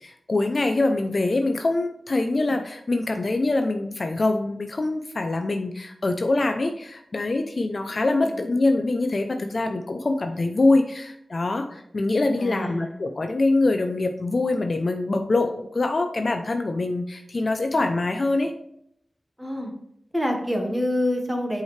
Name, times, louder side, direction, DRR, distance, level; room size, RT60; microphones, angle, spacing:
voice 1, 0.0-18.5, left 2 dB, 45° left, 6 dB, 0.6 m, -24 dB
voice 2, 8.1-8.5 12.4-13.0 19.4-19.7 20.1-21.6, left 1 dB, 5° right, 2 dB, 1.4 m, -27 dB
8.1 x 5.0 x 3.3 m, 0.72 s
wide cardioid pair, 110°, 0 cm